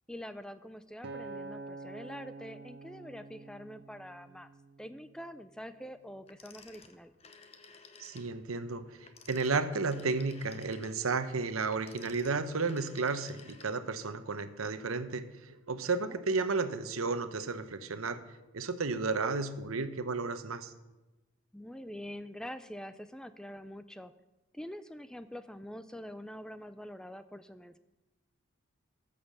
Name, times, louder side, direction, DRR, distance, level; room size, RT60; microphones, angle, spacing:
voice 1, 0.1-4.5 4.8-7.1 16.1-16.2 21.5-24.1 24.5-27.8, equal, 5° left, 12 dB, 0.4 m, -45 dB
Acoustic guitar, 1.0-5.4 6.0-6.2, right 3 dB, 55° right, 0.7 m, -47 dB
Telephone, 6.3-8.3 9.0-14.0, left 4 dB, 30° left, 0.9 m, -55 dB
voice 2, 8.0-18.2 18.5-20.7, right 4 dB, 90° right, 11 dB, 0.9 m, -33 dB
14.5 x 6.7 x 6.7 m, 1.1 s
head